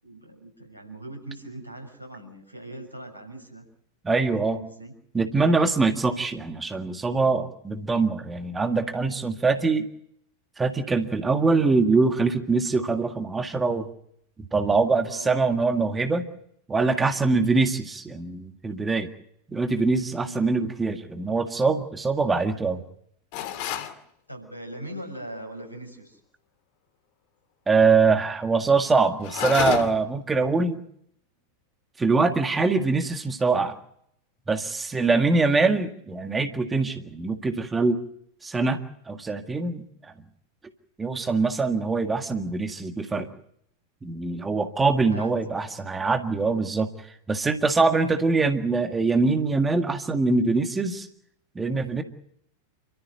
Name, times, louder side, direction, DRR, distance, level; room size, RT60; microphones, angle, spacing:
voice 1, 0.0-3.6 4.4-4.9 15.1-15.4 20.2-20.5 24.3-26.2 45.1-45.4 47.9-48.2, right 1 dB, 85° left, 5 dB, 6.6 m, -40 dB
voice 2, 4.0-4.6 5.1-9.9 10.6-13.9 14.5-16.3 16.7-19.1 19.5-22.8 27.7-30.8 32.0-33.8 34.5-38.0 38.4-38.8 39.1-39.8 41.0-43.3 44.0-46.9 47.3-51.1 51.6-52.0, right 4 dB, 15° right, 7 dB, 1.8 m, -23 dB
sound 1, 23.3-24.0 29.2-30.1, left 10 dB, 45° left, 2.3 m, -29 dB
28.0 x 13.5 x 9.2 m, 0.72 s
figure-of-eight pair, 90°, 0 cm